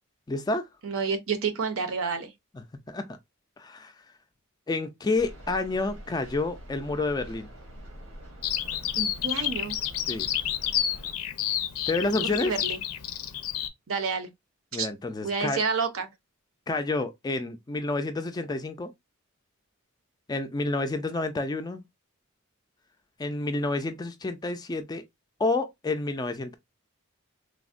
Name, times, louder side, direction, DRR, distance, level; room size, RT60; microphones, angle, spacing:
voice 1, 0.3-0.7 2.5-3.2 3.6-3.9 4.7-7.5 10.1-10.3 11.9-12.5 14.7-15.6 16.7-18.9 20.3-21.8 23.2-25.0 25.4-26.6, left 2 dB, 20° left, 0.3 m, -29 dB
voice 2, 0.8-2.3 9.0-9.8 12.0-12.8 13.9-14.3 14.7-14.9 15.2-16.1, right 5 dB, 70° right, 0.6 m, -29 dB
sound 1, 5.2-11.1, equal, 90° right, 1.1 m, -45 dB
Bird vocalization bird call bird song, 8.4-13.7, left 11 dB, 85° left, 0.4 m, -30 dB
3.4 x 2.0 x 2.4 m
head